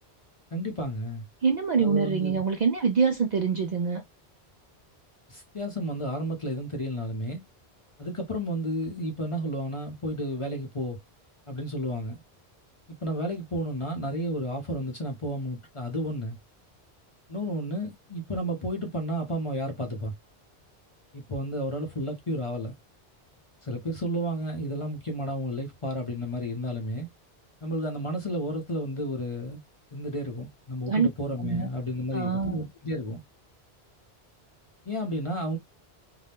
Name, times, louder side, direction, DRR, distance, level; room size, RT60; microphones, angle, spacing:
voice 1, 0.5-1.3 1.8-2.4 5.3-7.4 8.0-11.0 11.5-12.2 12.9-16.4 17.3-20.1 21.1-22.8 23.6-27.1 27.6-29.6 29.9-33.2 34.9-35.6, equal, 35° left, 0.6 m, -32 dB
voice 2, 1.4-4.0 30.9-31.1 31.4-31.7 32.1-32.6, right 5 dB, 55° right, 0.5 m, -25 dB
2.7 x 2.2 x 3.3 m
omnidirectional pair, 1.1 m